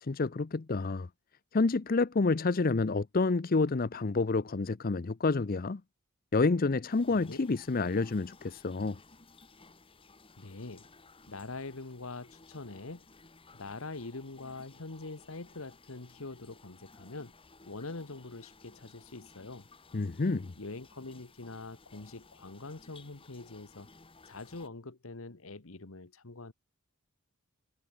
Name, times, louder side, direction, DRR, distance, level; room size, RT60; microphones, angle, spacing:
voice 1, 0.0-1.1 1.5-5.8 6.3-9.0 19.9-20.5, left 3 dB, 40° left, 0.6 m, -29 dB
sound 1, 6.9-24.7, left 3 dB, 25° left, 1.6 m, -58 dB
voice 2, 7.1-7.4 10.4-10.9 11.3-13.1 13.5-17.3 17.6-19.7 20.6-23.9 24.3-26.5, left 3 dB, 70° left, 1.4 m, -44 dB
head